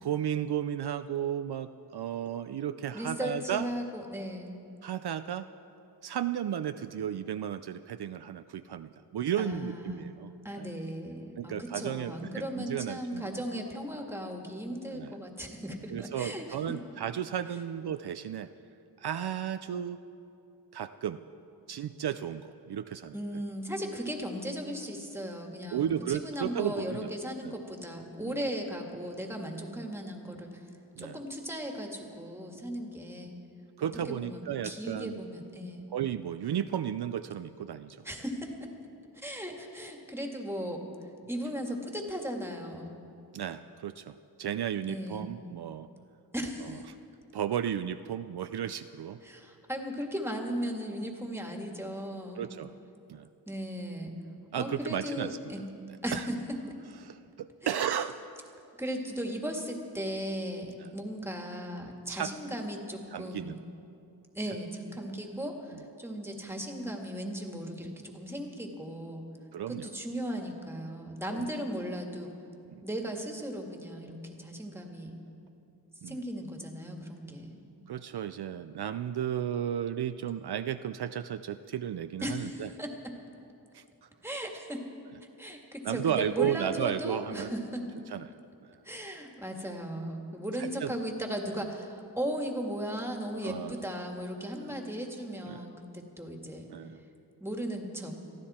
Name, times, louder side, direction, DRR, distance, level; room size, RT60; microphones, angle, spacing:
voice 1, 0.0-3.7 4.8-5.5 6.0-10.3 10.6-10.7 11.4-13.2 14.9-15.1 15.9-18.5 19.0-20.0 20.7-21.2 21.7-23.1 25.7-27.1 27.4-27.5 28.2-28.3 31.0-31.2 33.8-35.2 35.9-38.0 43.3-45.9 47.3-49.2 52.4-52.7 53.1-53.3 54.5-55.4 56.1-56.3 57.0-58.2 62.1-62.3 63.1-63.6 69.5-69.9 71.3-71.5 72.7-72.8 76.0-76.2 77.9-82.7 83.7-83.8 85.8-87.5 88.1-88.2 88.6-88.7 90.6-90.9 93.4-93.8 94.6-94.8 95.5-95.6 96.7-97.0, right 9 dB, 70° right, 10 dB, 0.5 m, -34 dB
voice 2, 2.9-4.6 9.4-10.0 10.4-16.8 23.1-30.7 31.0-33.3 34.0-35.9 38.0-38.7 39.1-40.8 41.3-43.0 44.9-45.3 46.3-46.8 49.2-52.4 53.5-54.1 54.5-55.7 56.0-56.6 57.6-57.9 58.8-63.6 64.3-69.2 69.7-72.3 72.8-75.2 76.0-77.6 82.2-82.9 84.2-84.8 85.4-87.9 88.8-96.7 97.4-98.1, equal, 5° right, 2 dB, 2.0 m, -37 dB
23.0 x 14.5 x 4.3 m, 2.7 s
wide cardioid pair, 105°, 41 cm